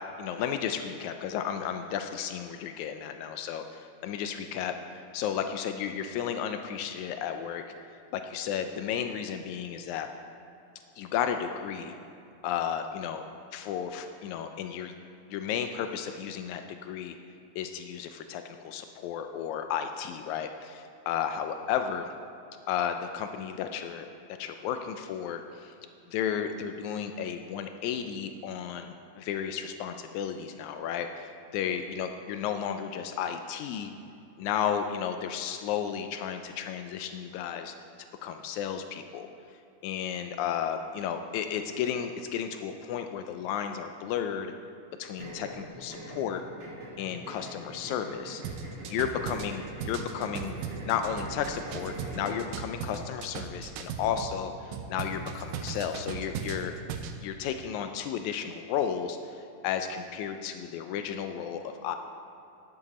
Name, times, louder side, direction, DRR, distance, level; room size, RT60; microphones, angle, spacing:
voice 1, 0.2-7.6 8.1-10.1 11.0-12.0 12.4-13.2 13.5-14.9 15.3-17.2 17.5-22.1 22.7-24.1 24.4-25.7 26.1-33.9 34.4-37.7 38.2-39.3 39.8-44.5 45.0-46.4 47.0-48.4 48.9-50.6 50.8-56.7 57.2-62.0, left 8 dB, 85° left, 7 dB, 1.7 m, -33 dB
sound 1, 45.2-52.5, right 1 dB, 50° right, 2.5 m, -44 dB
sound 2, 48.4-54.3 54.7-57.2, right 6 dB, 80° right, 2.2 m, -38 dB
10.5 x 9.2 x 4.2 m, 2.6 s
omnidirectional pair, 3.8 m